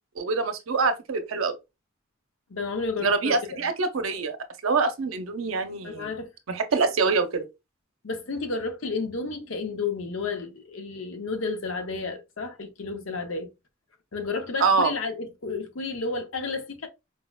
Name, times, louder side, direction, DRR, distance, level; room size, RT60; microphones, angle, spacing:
voice 1, 0.2-1.6 3.0-4.4 4.6-6.1 6.5-7.5 14.6-14.9, right 4 dB, 85° right, 0.6 m, -25 dB
voice 2, 2.5-3.7 5.8-6.3 8.0-13.5 14.1-16.9, left 4 dB, 70° left, 0.7 m, -32 dB
4.6 x 2.1 x 2.2 m
head